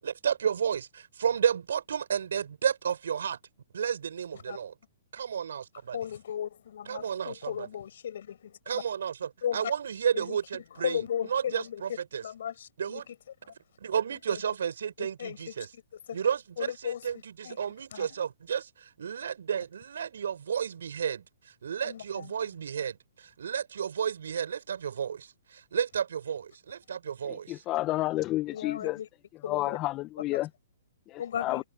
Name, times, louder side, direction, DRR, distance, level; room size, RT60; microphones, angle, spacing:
voice 1, 0.0-3.4 3.7-4.7 5.1-6.0 6.9-7.7 8.7-12.2 12.8-13.1 13.8-15.7 16.1-27.6, right 8 dB, 75° right, 6.6 m, -32 dB
voice 2, 5.9-8.8 9.4-9.7 10.1-10.4 10.7-11.8 12.2-13.0 13.4-13.5 14.3-14.4 15.0-15.8 16.1-16.2 16.6-17.0 17.4-17.6 17.9-18.2 21.8-22.3 28.5-29.1 29.4-29.8 30.3-30.4 31.2-31.6, left 9 dB, 65° left, 7.8 m, -36 dB
voice 3, 27.3-29.0 29.5-30.5 31.4-31.6, left 17 dB, 30° left, 0.8 m, -30 dB
hypercardioid pair, 130°, 0 cm